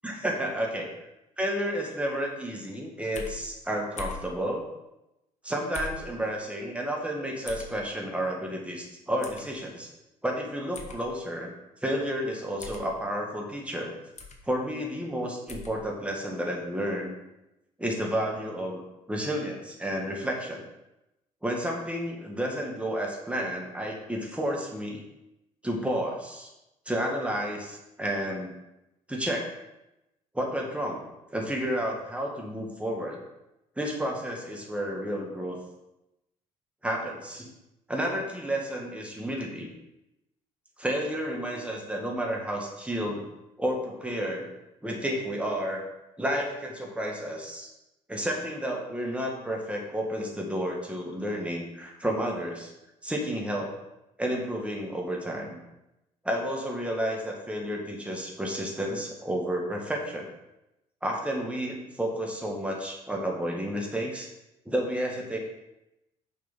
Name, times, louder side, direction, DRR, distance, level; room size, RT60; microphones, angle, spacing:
voice 1, 0.0-0.9 1.4-4.6 5.4-9.9 10.2-11.5 11.8-13.9 14.5-17.1 17.8-18.8 19.1-20.6 21.4-25.0 25.6-26.5 26.9-28.5 29.1-29.5 30.3-33.2 33.8-35.6 36.8-37.5 37.9-39.7 40.8-43.2 43.6-44.5 44.8-45.8 46.2-47.7 48.1-52.7 53.0-53.7 54.2-55.6 56.2-60.3 61.0-64.3 64.7-65.4, equal, 5° right, 0 dB, 2.0 m, -31 dB
sound 1, 3.1-3.4 4.0-4.3 5.7-6.0 7.5-7.7 9.2-9.4 10.7-11.0 12.6-12.9 14.2-14.4 15.5-15.7, left 4 dB, 35° left, 1.5 m, -39 dB
6.9 x 5.6 x 5.5 m, 0.91 s
hypercardioid pair, 55°, 19 cm